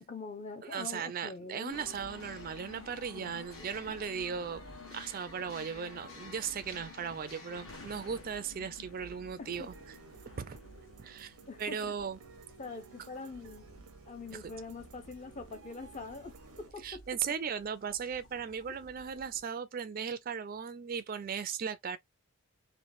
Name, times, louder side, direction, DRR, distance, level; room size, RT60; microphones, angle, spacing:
voice 1, 0.0-1.8 3.1-3.7 9.4-9.7 11.5-11.8 12.6-17.1, left 3 dB, 30° left, 0.5 m, -44 dB
voice 2, 0.7-4.6 4.9-9.7 10.3-10.6 11.0-12.2 14.3-14.4 16.8-22.0, right 7 dB, 40° right, 0.3 m, -37 dB
sound 1, 1.7-19.4, left 2 dB, 65° left, 1.3 m, -52 dB
sound 2, 9.4-16.7, right 4 dB, 85° right, 0.6 m, -55 dB
3.1 x 2.1 x 2.6 m
head